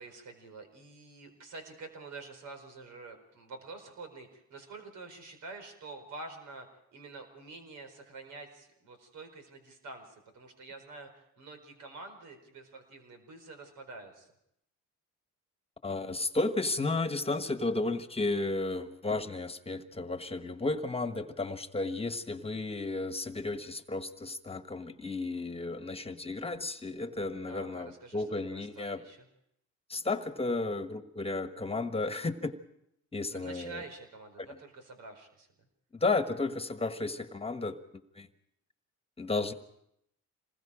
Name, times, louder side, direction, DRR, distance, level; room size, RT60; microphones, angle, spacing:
voice 1, 0.0-14.3 27.5-28.2 28.5-29.2 33.3-35.5, right 3 dB, 85° right, 5 dB, 4.7 m, -47 dB
voice 2, 15.8-29.0 29.9-32.5 33.1-33.8 34.4-34.5 35.9-37.8 38.1-38.3 39.2-39.5, left 3 dB, 20° left, 9 dB, 1.4 m, -33 dB
27.5 x 20.5 x 5.0 m, 0.77 s
cardioid pair, 90°, 30 cm